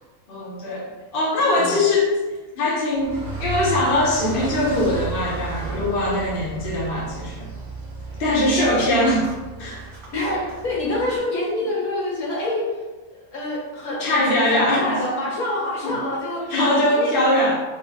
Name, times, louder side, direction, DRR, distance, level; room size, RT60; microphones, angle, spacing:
voice 1, 0.3-2.2 2.5-7.5 8.2-9.3 9.6-9.8 14.0-14.9 15.8-16.0 16.4-17.6, left 1 dB, 45° left, -5 dB, 0.9 m, -21 dB
Car, 2.9-11.2, right 2 dB, 25° right, 0.9 m, -33 dB
voice 2, 10.1-12.8 13.3-14.2 14.5-16.5 16.9-17.1, left 1 dB, 75° left, -5 dB, 1.4 m, -26 dB
3.0 x 2.6 x 3.4 m, 1.2 s
omnidirectional pair, 1.5 m